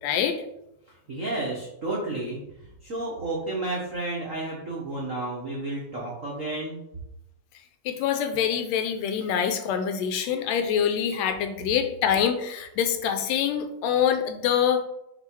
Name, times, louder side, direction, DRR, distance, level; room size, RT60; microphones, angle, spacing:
voice 1, 0.0-0.4 7.8-14.8, left 8 dB, 80° left, 7 dB, 1.7 m, -25 dB
voice 2, 0.9-2.4 2.8-6.8, right 2 dB, 85° right, -4 dB, 0.7 m, -31 dB
6.8 x 3.1 x 4.5 m, 0.83 s
omnidirectional pair, 3.4 m